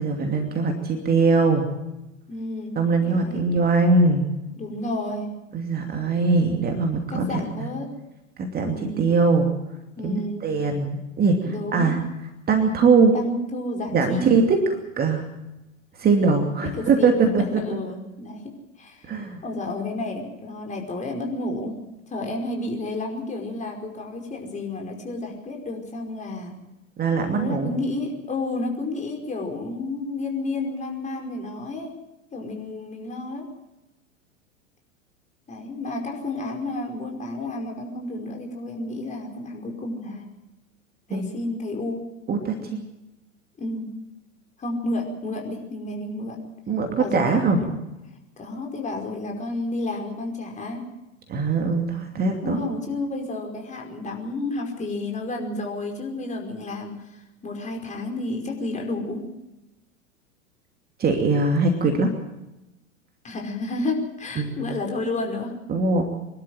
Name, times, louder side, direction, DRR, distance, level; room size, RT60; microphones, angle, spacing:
voice 1, 0.0-1.7 2.8-4.3 5.5-7.7 8.4-9.5 10.0-12.0 12.5-13.1 13.9-15.2 16.0-17.8 19.1-19.4 27.0-27.7 41.1-41.2 42.3-42.8 46.7-47.6 51.3-52.6 61.0-62.1 64.4-64.6 65.7-66.0, right 4 dB, 25° right, 4 dB, 2.7 m, -21 dB
voice 2, 2.3-2.7 3.0-3.4 4.6-5.3 7.1-7.9 8.6-9.0 10.0-10.4 11.4-11.9 13.1-14.4 16.3-16.4 16.8-18.4 18.8-21.8 22.1-26.6 27.3-31.9 32.3-33.5 35.5-40.2 41.1-42.1 42.6-42.8 43.6-43.9 44.6-46.4 47.0-47.7 48.4-50.8 52.4-59.2 63.2-65.5, left 2 dB, 20° left, 2 dB, 5.1 m, -31 dB
24.5 x 12.5 x 9.2 m, 0.95 s
figure-of-eight pair, 90°, 39 cm